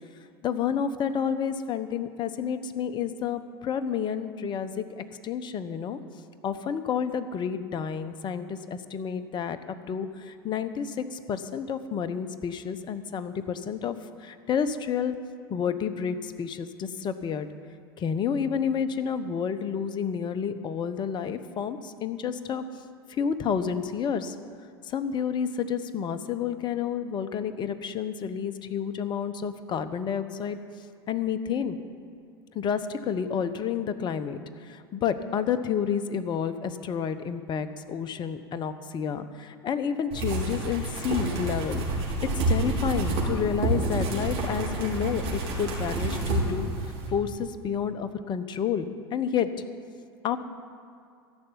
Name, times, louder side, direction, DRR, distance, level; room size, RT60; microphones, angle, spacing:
voice 1, 0.4-6.0 6.4-13.9 14.2-15.1 15.5-17.5 18.0-22.6 23.1-24.3 24.9-30.6 31.1-31.8 32.5-34.4 34.7-41.8 42.5-46.7 47.1-49.5 50.2-50.4, left 7 dB, 35° left, 11 dB, 0.9 m, -30 dB
sound 1, 40.1-47.1, right 2 dB, 50° right, 4.3 m, -28 dB
14.0 x 6.8 x 9.7 m, 2.3 s
hypercardioid pair, 85°, 13 cm